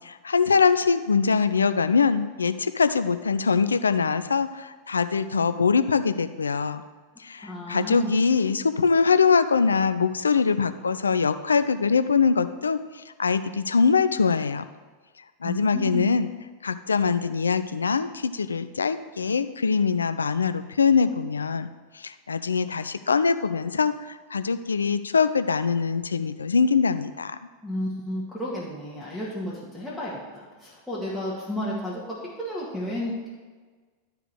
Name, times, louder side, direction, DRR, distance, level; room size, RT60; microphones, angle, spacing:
voice 1, 0.1-6.8 7.2-12.8 13.2-14.6 15.4-16.3 16.6-21.7 22.0-23.9 24.3-27.4, left 5 dB, 75° left, 12 dB, 0.4 m, -23 dB
voice 2, 7.4-8.1 15.4-16.1 27.6-32.0 32.4-33.3, equal, ahead, -9 dB, 2.1 m, -32 dB
12.0 x 4.9 x 4.8 m, 1.4 s
figure-of-eight pair, 90°, 0 cm